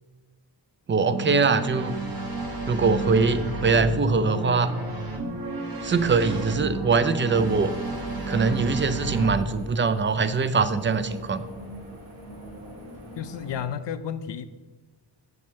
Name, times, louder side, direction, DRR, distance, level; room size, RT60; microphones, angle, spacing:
voice 1, 0.9-2.0 2.7-4.7 5.8-7.7 8.3-11.4, right 4 dB, 30° right, 13 dB, 0.4 m, -22 dB
sound 1, 1.1-9.3, right 2 dB, 55° right, 1.4 m, -31 dB
sound 2, 7.3-13.6, right 1 dB, 75° right, 2.4 m, -42 dB
voice 2, 13.2-14.5, left 8 dB, 70° left, 11 dB, 0.5 m, -32 dB
7.7 x 6.8 x 3.5 m, 1.3 s
wide cardioid pair, 100°, 45 cm